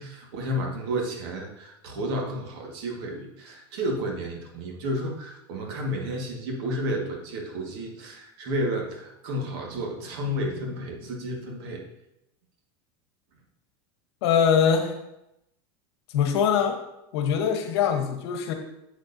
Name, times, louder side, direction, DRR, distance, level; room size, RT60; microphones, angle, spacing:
voice 1, 0.0-11.8, equal, 70° right, 1 dB, 1.8 m, -31 dB
voice 2, 14.2-15.0 16.1-16.8 17.1-18.5, left 7 dB, 75° left, 6 dB, 1.1 m, -23 dB
8.0 x 6.5 x 2.7 m, 0.85 s
supercardioid pair, 140°, 14 cm